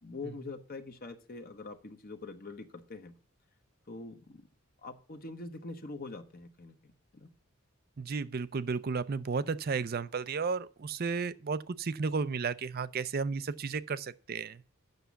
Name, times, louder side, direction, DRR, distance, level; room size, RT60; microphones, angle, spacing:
voice 1, 0.0-3.1 3.9-4.5 4.8-7.3, left 3 dB, 45° left, 0.9 m, -44 dB
voice 2, 8.0-14.6, right 5 dB, 45° right, 0.5 m, -33 dB
8.0 x 6.2 x 6.9 m
head